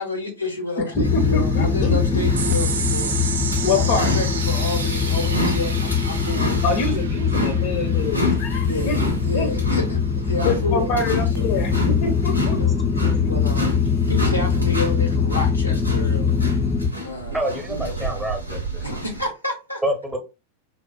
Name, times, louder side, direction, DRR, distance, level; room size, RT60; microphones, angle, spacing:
voice 1, 0.0-3.1 3.7-6.6 8.6-11.5 12.4-12.7 13.2-13.8 14.1-16.4 17.0-17.4 17.7-18.0 18.8-19.8, left 2 dB, 90° left, 0.7 m, -30 dB
voice 2, 0.9-2.2 3.6-4.1 6.6-9.0 9.3-9.5 10.4-13.3, left 3 dB, 50° left, 0.7 m, -26 dB
sound 1, 0.9-16.9, left 6 dB, 10° left, 0.4 m, -22 dB
sound 2, 1.0-19.3, left 1 dB, 80° right, 0.7 m, -30 dB
sound 3, 2.4-9.1, right 7 dB, 65° right, 0.3 m, -32 dB
voice 3, 17.3-18.9 19.8-20.2, right 1 dB, 10° right, 0.8 m, -27 dB
4.6 x 2.0 x 2.2 m
figure-of-eight pair, 90°, 0 cm